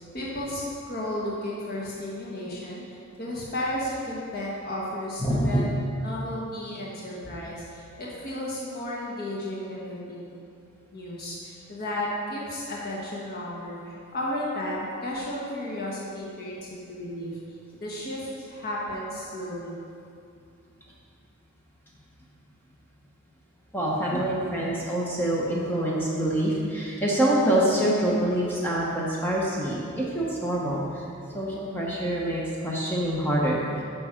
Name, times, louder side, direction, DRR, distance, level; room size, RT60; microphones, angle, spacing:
voice 1, 0.1-5.7 6.0-10.3 10.9-17.4 17.8-19.8, left 1 dB, 45° left, -5 dB, 1.3 m, -33 dB
voice 2, 5.2-5.6 23.7-31.0 31.3-33.8, right 1 dB, 10° left, -5 dB, 1.0 m, -25 dB
9.4 x 6.1 x 5.0 m, 2.5 s
head